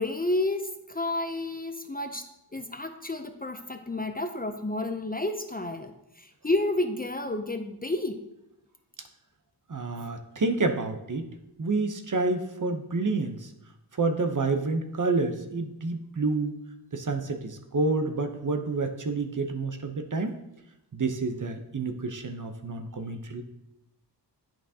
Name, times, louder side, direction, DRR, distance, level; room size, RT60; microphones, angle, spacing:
voice 1, 0.0-8.3, left 2 dB, 20° left, 7 dB, 0.5 m, -31 dB
voice 2, 9.7-11.2 11.6-13.5 13.9-16.5 16.9-20.3 20.9-23.4, right 3 dB, 45° right, 7 dB, 0.8 m, -29 dB
8.6 x 5.9 x 2.8 m, 0.87 s
wide cardioid pair, 55°, 43 cm